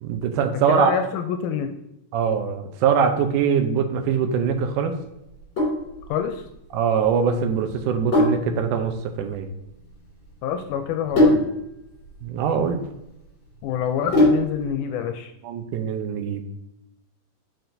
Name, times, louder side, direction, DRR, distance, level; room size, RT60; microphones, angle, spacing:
voice 1, 0.0-0.9 2.1-5.0 6.7-9.5 12.2-12.8 15.4-16.4, right 7 dB, 80° right, 6 dB, 2.2 m, -22 dB
voice 2, 0.7-1.7 6.1-6.4 10.4-11.5 13.6-15.3, left 8 dB, 85° left, 6 dB, 2.0 m, -26 dB
Sink (filling or washing), 5.3-14.7, left 1 dB, 35° left, 2.9 m, -24 dB
6.7 x 5.8 x 2.6 m, 0.85 s
omnidirectional pair, 3.6 m